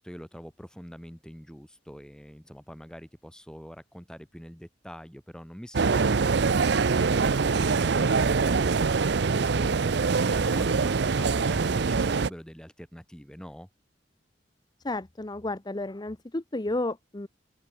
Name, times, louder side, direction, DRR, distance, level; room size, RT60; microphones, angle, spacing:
voice 1, 0.0-9.9 10.2-13.7, equal, 5° left, 4.8 m, -44 dB
sound 1, 5.7-12.3, right 4 dB, 65° right, 0.6 m, -24 dB
voice 2, 14.8-17.3, left 2 dB, 25° left, 0.8 m, -32 dB
open air
head